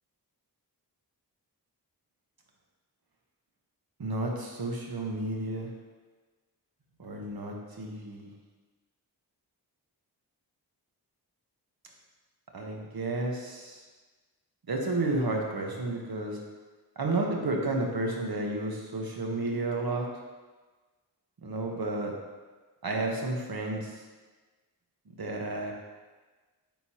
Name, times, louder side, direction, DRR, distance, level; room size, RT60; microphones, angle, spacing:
voice 1, 4.0-5.7 7.0-8.3 12.5-13.8 14.7-16.4 17.0-20.1 21.4-22.2 22.8-24.0 25.1-25.7, right 2 dB, 60° right, 0 dB, 1.2 m, -31 dB
9.5 x 3.8 x 2.9 m, 1.3 s
cardioid pair, 45°, 41 cm